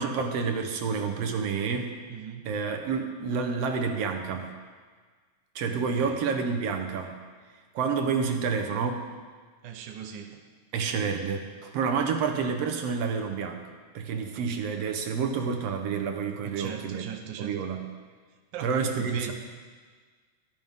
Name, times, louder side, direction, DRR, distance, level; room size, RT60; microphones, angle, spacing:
voice 1, 0.0-1.9 2.5-4.5 5.6-7.2 7.8-9.1 10.7-13.6 13.9-17.0 17.4-17.9 18.6-19.3, right 5 dB, 65° right, 5 dB, 1.8 m, -29 dB
voice 2, 2.1-2.5 5.9-6.1 9.6-10.4 16.4-17.5 18.5-19.3, right 8 dB, 85° right, 4 dB, 1.0 m, -38 dB
15.0 x 12.5 x 3.6 m, 1.5 s
omnidirectional pair, 3.4 m